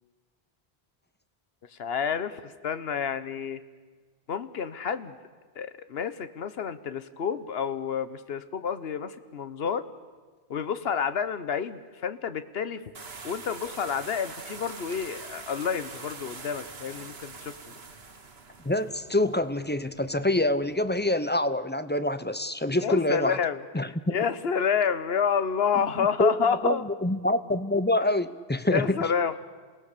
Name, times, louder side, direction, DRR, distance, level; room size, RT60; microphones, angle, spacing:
voice 1, 1.8-3.6 4.3-5.1 5.6-9.8 10.5-12.8 13.2-17.7 22.8-26.8 28.7-29.4, left 7 dB, 70° left, 12 dB, 1.2 m, -29 dB
sound 1, 12.9-21.1, right 4 dB, 70° right, 1.7 m, -44 dB
voice 2, 18.6-23.4 23.7-23.9 26.0-26.3 26.6-29.0, left 1 dB, 15° left, 12 dB, 0.5 m, -26 dB
28.0 x 18.0 x 6.8 m, 1.4 s
omnidirectional pair, 1.1 m